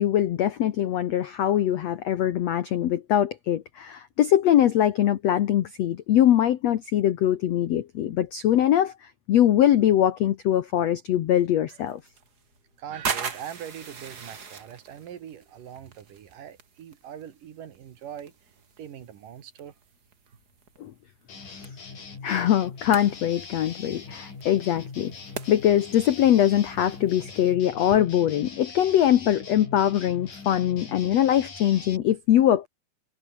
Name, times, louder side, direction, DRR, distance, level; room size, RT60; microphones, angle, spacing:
voice 1, 0.0-12.0 20.8-20.9 22.2-25.1 25.5-32.7, left 11 dB, 70° left, 1.6 m, -22 dB
sound 1, 11.7-27.5, right 5 dB, 35° right, 1.8 m, -41 dB
voice 2, 12.8-18.3 18.8-19.7, right 9 dB, 60° right, 3.3 m, -41 dB
sound 2, 21.3-32.0, left 4 dB, 55° left, 7.3 m, -42 dB
omnidirectional pair, 4.5 m